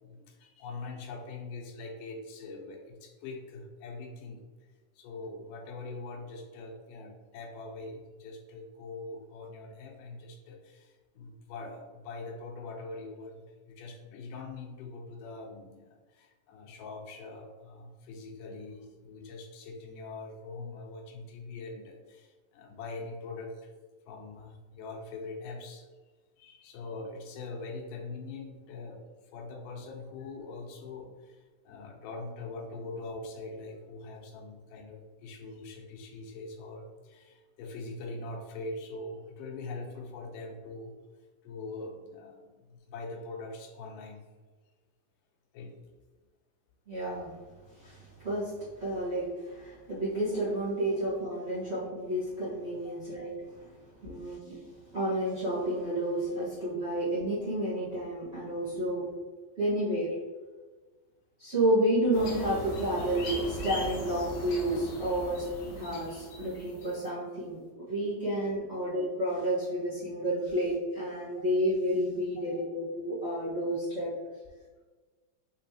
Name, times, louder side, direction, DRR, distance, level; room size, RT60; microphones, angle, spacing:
voice 1, 0.0-4.4 5.0-10.9 11.2-13.4 13.7-22.3 22.5-23.5 24.1-25.8 26.4-29.0 29.3-31.1 31.7-40.9 41.4-44.2 45.5-45.7 52.9-53.0 54.0-54.1 65.3-65.5 72.5-72.6, left 3 dB, 85° left, 2 dB, 2.2 m, -42 dB
voice 2, 46.9-47.3 47.8-48.0 48.2-48.5 48.8-53.3 54.0-54.6 54.9-59.0 59.6-60.1 61.4-74.1, right 1 dB, 40° right, -11 dB, 0.9 m, -30 dB
sound 1, 62.1-67.0, left 1 dB, 65° left, 1.7 m, -39 dB
5.9 x 3.0 x 2.9 m, 1.3 s
omnidirectional pair, 3.7 m